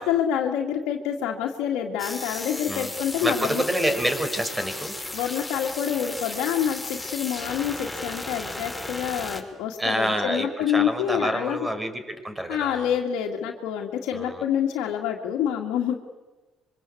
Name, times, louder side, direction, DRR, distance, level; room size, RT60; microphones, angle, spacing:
voice 1, 0.0-3.6 5.1-11.7 12.5-16.0, left 9 dB, 80° left, 0 dB, 2.0 m, -27 dB
sound 1, 2.0-9.4, left 2 dB, 5° left, 5.5 m, -35 dB
voice 2, 3.2-4.9 9.8-12.9 14.1-14.4, right 1 dB, 15° right, 8 dB, 5.4 m, -27 dB
25.5 x 24.0 x 8.4 m, 1.2 s
supercardioid pair, 65°, 0 cm